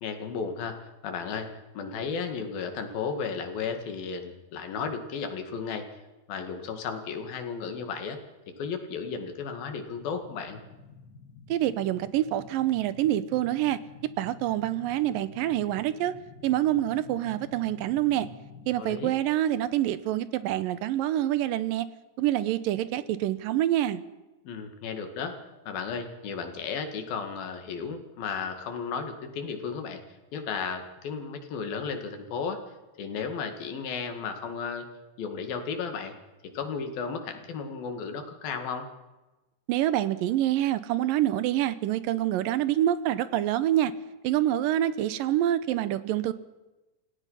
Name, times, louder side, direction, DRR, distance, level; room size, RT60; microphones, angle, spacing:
voice 1, 0.0-5.9 6.3-8.2 8.6-10.6 18.8-19.1 24.4-25.4 25.7-30.0 30.3-34.9 35.2-36.2 36.5-38.9, left 5 dB, 90° left, 6 dB, 3.9 m, -34 dB
sound 1, 10.0-18.8, left 5 dB, 35° left, 1.7 m, -50 dB
voice 2, 11.5-13.8 14.2-16.2 16.4-18.3 18.7-21.9 22.2-24.0 39.7-43.9 44.2-46.3, right 13 dB, 80° right, 15 dB, 2.5 m, -26 dB
28.5 x 16.5 x 5.7 m, 1.1 s
omnidirectional pair, 4.0 m